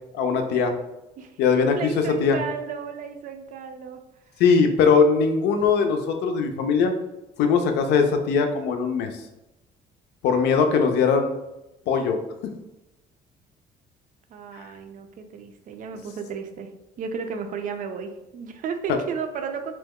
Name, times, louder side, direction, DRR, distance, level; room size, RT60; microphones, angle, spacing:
voice 1, 0.1-0.7 1.4-1.9 2.2-2.4 4.4-6.9 7.4-9.2 10.2-11.3 11.9-12.2, left 5 dB, 80° left, 6 dB, 0.5 m, -20 dB
voice 2, 1.8-4.0 14.3-16.7 17.0-19.7, right 6 dB, 50° right, 6 dB, 0.4 m, -33 dB
2.8 x 2.1 x 3.5 m, 0.95 s
cardioid pair, 110°, 17 cm